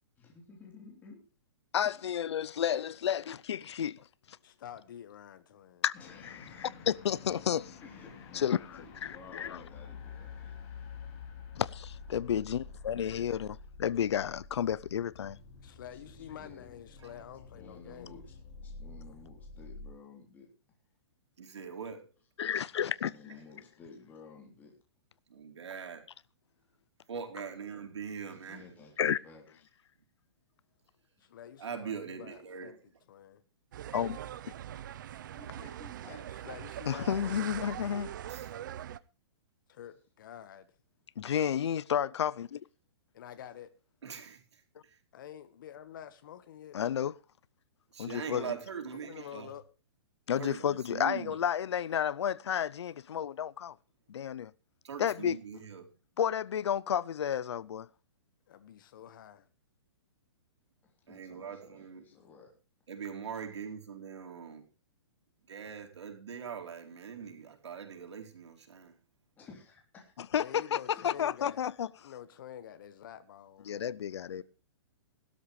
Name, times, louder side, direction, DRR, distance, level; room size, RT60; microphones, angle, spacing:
voice 1, 0.2-1.2 1.8-2.1 5.9-6.7 7.8-10.5 15.9-16.7 17.5-18.4 18.6-20.5 22.8-24.7 28.1-29.4 35.3-36.3 38.4-38.5 61.1-62.5 69.4-70.1 70.9-71.1 74.3-74.4, left 4 dB, 10° left, 3.3 m, -54 dB
voice 2, 1.7-4.0 4.3-4.4 5.8-5.9 6.6-7.7 8.4-8.6 9.0-9.6 11.5-15.4 22.4-23.1 29.0-29.2 33.9-34.2 36.9-38.1 41.2-42.6 46.7-47.1 48.0-48.5 50.3-53.7 54.1-54.5 55.0-55.4 56.2-57.9 70.3-71.9 73.7-74.4, left 9 dB, 80° left, 0.6 m, -31 dB
voice 3, 4.4-5.8 15.6-18.2 31.2-32.7 33.1-33.4 36.4-37.5 39.7-40.7 43.1-43.7 45.1-47.0 49.1-49.6 58.5-59.5 70.4-71.6 72.0-73.7, left 10 dB, 50° left, 1.4 m, -48 dB
sound 1, 5.9-19.9, left 5 dB, 30° left, 3.4 m, -49 dB
voice 4, 21.4-22.1 25.3-26.0 27.1-28.7 31.6-32.8 38.3-38.5 44.0-44.4 47.9-49.5 50.4-51.4 54.8-55.9 61.1-62.0 62.9-64.6 65.5-69.0, right 6 dB, 85° right, 4.4 m, -42 dB
sound 2, 33.7-39.0, right 11 dB, 45° right, 0.7 m, -42 dB
17.0 x 12.5 x 3.2 m
hypercardioid pair, 165°, 14 cm